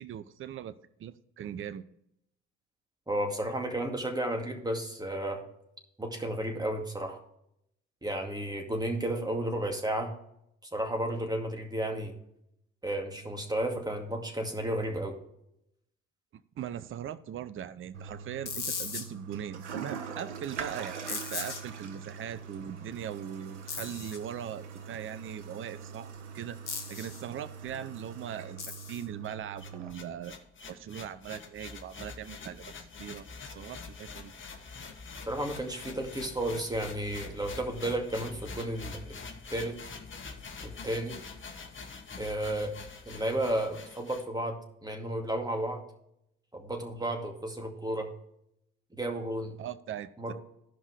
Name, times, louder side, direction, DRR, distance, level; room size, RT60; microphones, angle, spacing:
voice 1, 0.0-1.9 16.3-26.6 26.9-28.6 28.9-30.4 30.7-32.7 33.0-34.3 49.6-50.3, right 9 dB, 35° right, 15 dB, 0.6 m, -40 dB
voice 2, 3.1-5.4 6.0-7.2 8.0-10.1 10.7-12.2 12.8-15.2 35.3-39.2 39.5-39.8 40.6-41.2 42.2-42.7 43.1-45.8 46.5-48.1 48.9-49.5 50.2-50.3, right 1 dB, 10° right, 3 dB, 2.2 m, -33 dB
Toilet flush, 17.9-29.9, right 6 dB, 90° right, 0.8 m, -43 dB
sound 1, 18.5-19.0 21.1-21.6 23.7-24.2 26.7-27.2 28.6-29.0, left 5 dB, 90° left, 1.0 m, -37 dB
sound 2, 29.2-44.2, left 4 dB, 35° left, 1.4 m, -45 dB
13.5 x 5.4 x 4.7 m, 0.77 s
hypercardioid pair, 50°, 34 cm